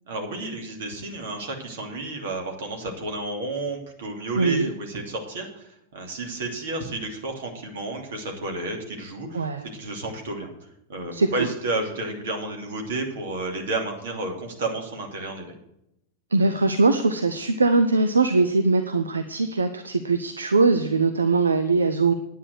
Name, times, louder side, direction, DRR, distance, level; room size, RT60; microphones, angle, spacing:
voice 1, 0.1-10.5 10.9-15.5, right 2 dB, 60° right, 3 dB, 2.8 m, -31 dB
voice 2, 4.4-4.7 9.3-9.7 11.1-11.5 16.3-22.1, right 3 dB, 75° right, 9 dB, 0.7 m, -21 dB
10.0 x 9.3 x 6.6 m, 0.81 s
figure-of-eight pair, 90°, 0 cm